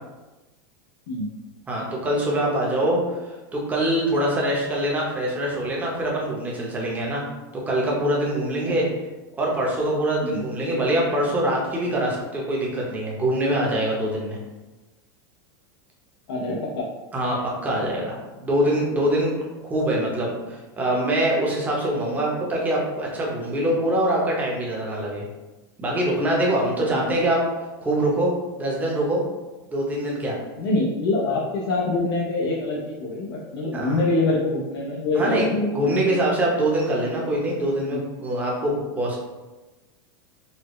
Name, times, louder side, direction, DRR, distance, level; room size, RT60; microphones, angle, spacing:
voice 1, 1.7-3.2 3.5-7.2 7.5-8.9 9.4-14.4 17.1-19.4 19.6-25.3 25.8-27.5 27.8-29.2 29.7-30.4 33.7-34.0 35.1-35.5 35.7-39.2, right 1 dB, 10° right, -3 dB, 0.8 m, -24 dB
voice 2, 16.3-16.9 26.9-27.3 30.6-35.9 37.9-38.0, left 2 dB, 85° left, -4 dB, 0.7 m, -25 dB
4.1 x 2.1 x 3.1 m, 1.1 s
supercardioid pair, 145°, 13 cm